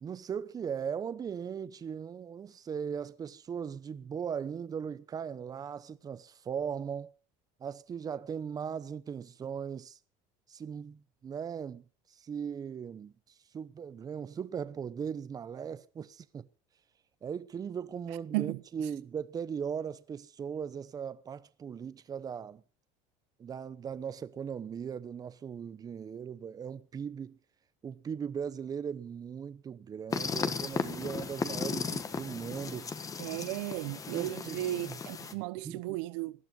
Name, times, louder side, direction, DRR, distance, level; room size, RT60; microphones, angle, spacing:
voice 1, 0.0-7.1 7.6-10.0 10.5-11.8 12.2-13.1 13.5-16.5 17.2-22.6 23.4-27.4 27.8-32.9 34.1-35.0 35.6-35.8, right 7 dB, 25° right, 0.9 m, -38 dB
sound 1, 30.1-35.3, left 5 dB, 25° left, 1.4 m, -36 dB
voice 2, 33.2-36.3, right 17 dB, 85° right, 1.0 m, -35 dB
19.0 x 12.5 x 5.4 m
cardioid pair, 140°, 15 cm